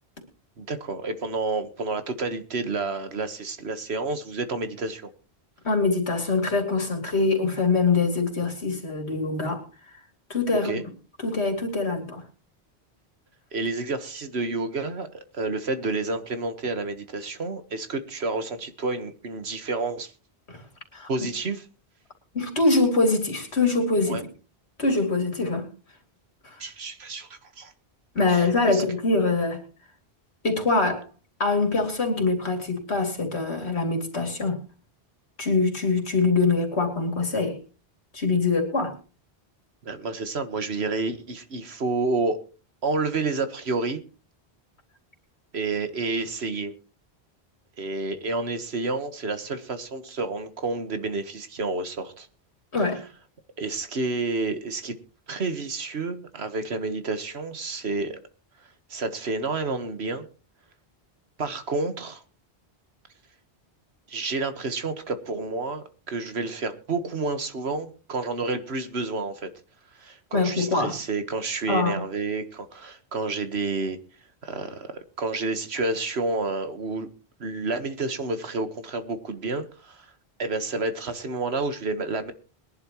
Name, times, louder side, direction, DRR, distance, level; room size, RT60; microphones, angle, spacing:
voice 1, 0.6-5.1 10.6-10.8 13.5-20.1 21.1-21.7 24.1-24.2 26.6-27.7 28.3-28.8 39.8-42.4 42.8-44.0 45.5-46.7 47.8-52.3 53.6-54.9 55.3-58.2 58.9-60.2 61.4-62.2 64.1-69.5 70.0-74.0 74.4-77.1 77.4-80.1 80.4-82.3, right 3 dB, 75° right, 9 dB, 1.7 m, -30 dB
voice 2, 5.6-9.6 10.3-10.8 11.2-12.2 20.5-20.6 20.9-21.1 22.3-24.2 24.8-25.7 26.4-26.6 28.1-29.6 30.4-31.1 31.4-34.6 35.4-37.6 38.1-39.0 52.7-53.0 70.3-71.0 71.7-72.0, left 3 dB, 85° left, 4 dB, 3.2 m, -24 dB
21.5 x 11.0 x 3.0 m, 0.35 s
omnidirectional pair, 1.1 m